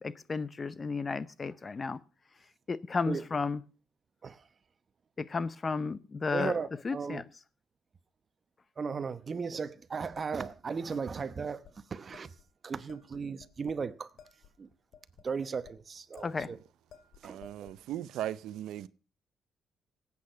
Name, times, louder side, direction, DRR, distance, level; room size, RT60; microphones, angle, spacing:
voice 1, 0.0-2.0 2.7-3.6 5.2-6.6 6.8-7.2 16.2-16.5, left 4 dB, 35° left, 0.7 m, -33 dB
voice 2, 6.3-7.2 8.8-12.3 12.6-14.1 14.6-14.7 15.2-16.6 17.2-17.4, right 5 dB, 40° right, 0.9 m, -36 dB
sound 1, 10.2-11.3 11.6-11.7 12.1-12.5 12.9-13.9 14.2-15.8 16.2-16.5 16.9-17.8, left 7 dB, 75° left, 2.4 m, -56 dB
voice 3, 17.2-18.9, right 12 dB, 85° right, 0.6 m, -38 dB
18.0 x 8.6 x 5.6 m
cardioid pair, 90°, 0 cm